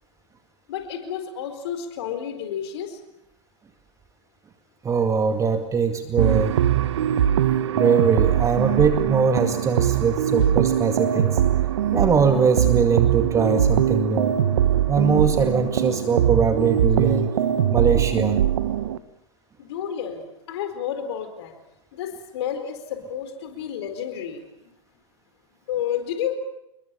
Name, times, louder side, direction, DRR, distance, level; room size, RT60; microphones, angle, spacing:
voice 1, 0.7-3.0 19.6-21.5 21.9-24.7 25.7-26.4, left 9 dB, 55° left, 8 dB, 4.4 m, -31 dB
voice 2, 4.8-6.6 7.8-11.4 11.9-14.3 14.9-17.3 17.7-18.4, right 5 dB, 20° right, 6 dB, 2.1 m, -21 dB
sound 1, 6.2-19.0, right 10 dB, 65° right, 1.3 m, -21 dB
30.0 x 22.0 x 7.2 m, 0.83 s
figure-of-eight pair, 95°, 16 cm